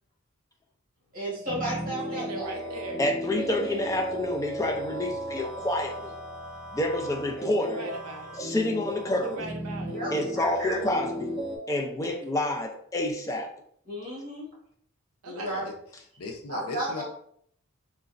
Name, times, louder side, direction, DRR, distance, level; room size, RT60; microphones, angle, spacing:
voice 1, 1.1-2.5 9.9-10.8 13.8-14.4 15.2-15.7 16.5-17.0, right 1 dB, 40° right, -6 dB, 1.5 m, -33 dB
sound 1, 1.5-11.6, equal, 5° right, 1.2 m, -35 dB
voice 2, 2.1-3.0 3.3-4.0 7.6-8.4 9.2-10.0 15.2-15.5, right 2 dB, 75° right, 3 dB, 0.5 m, -40 dB
voice 3, 3.0-6.1 6.7-7.8 8.4-9.4 10.1-11.4 11.7-13.5, left 1 dB, 15° left, 3 dB, 0.3 m, -28 dB
voice 4, 15.4-15.7 16.2-17.0, left 3 dB, 85° left, 3 dB, 0.6 m, -38 dB
3.9 x 2.2 x 2.4 m, 0.64 s
head